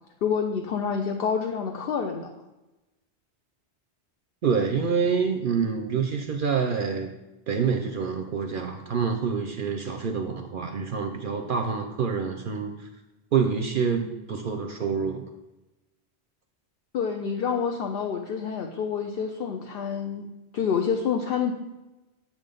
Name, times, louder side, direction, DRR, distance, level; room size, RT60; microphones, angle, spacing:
voice 1, 0.2-2.3 16.9-20.3 20.5-21.5, left 6 dB, 65° left, 3 dB, 0.7 m, -27 dB
voice 2, 4.4-7.1 7.5-12.9 13.3-15.2, right 6 dB, 60° right, 4 dB, 0.6 m, -27 dB
7.4 x 3.8 x 5.2 m, 1.0 s
omnidirectional pair, 1.2 m